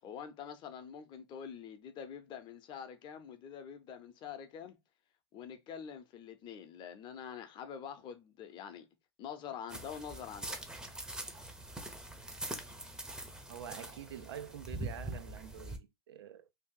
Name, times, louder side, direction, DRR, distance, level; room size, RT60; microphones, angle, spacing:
voice 1, 0.0-4.8 5.3-8.9 9.2-10.6, left 7 dB, 35° left, 0.7 m, -46 dB
sound 1, 9.7-15.8, right 1 dB, 5° right, 0.7 m, -43 dB
voice 2, 13.5-16.5, right 9 dB, 75° right, 0.5 m, -46 dB
2.8 x 2.3 x 3.7 m
hypercardioid pair, 110°, 13 cm